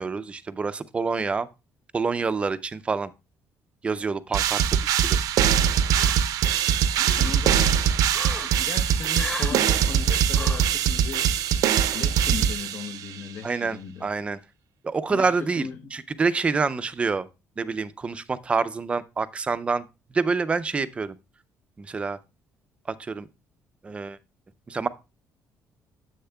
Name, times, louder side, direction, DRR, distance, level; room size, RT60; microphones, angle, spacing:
voice 1, 0.0-1.5 1.9-3.1 3.8-5.2 13.4-14.4 14.8-17.3 17.6-19.9 20.1-21.2 21.8-22.2 23.0-23.3 23.8-24.2 24.7-24.9, right 4 dB, 20° right, 0.4 m, -27 dB
sound 1, 4.3-13.2, right 9 dB, 75° right, 0.6 m, -22 dB
sound 2, 5.9-6.4 6.8-7.3 8.1-8.5 9.1-9.6 10.3-10.7, left 3 dB, 15° left, 1.2 m, -35 dB
voice 2, 7.1-7.8 8.6-11.4 11.9-14.1 15.1-15.8, left 6 dB, 45° left, 0.7 m, -37 dB
10.0 x 7.8 x 2.2 m
cardioid pair, 175°, 6 cm